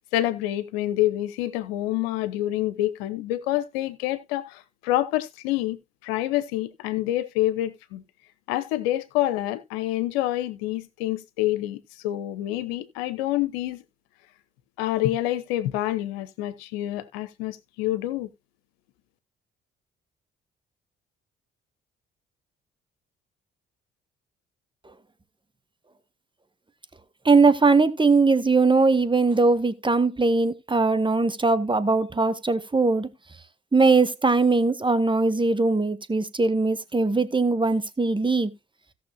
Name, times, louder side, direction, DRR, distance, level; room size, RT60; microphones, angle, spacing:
voice 1, 0.1-5.8 6.0-8.0 8.5-13.8 14.8-18.3, left 15 dB, 75° left, 1.0 m, -27 dB
voice 2, 27.2-33.1 33.7-38.5, right 3 dB, 15° right, 1.4 m, -20 dB
17.0 x 6.4 x 2.3 m
figure-of-eight pair, 45°, 30 cm